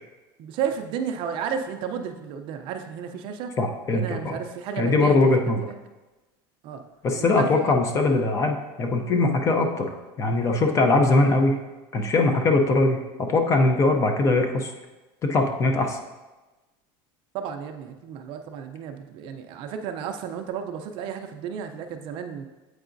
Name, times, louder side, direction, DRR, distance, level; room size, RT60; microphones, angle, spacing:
voice 1, 0.4-3.5 3.9-5.3 5.6-5.8 6.6-6.8 7.2-7.8 17.3-22.5, right 7 dB, 45° right, 6 dB, 0.5 m, -32 dB
voice 2, 3.6-4.4 4.8-5.6 7.0-11.6 11.9-14.7 15.2-16.0, left 2 dB, 25° left, 4 dB, 0.5 m, -21 dB
7.9 x 4.7 x 2.6 m, 1.1 s
cardioid pair, 155°, 12 cm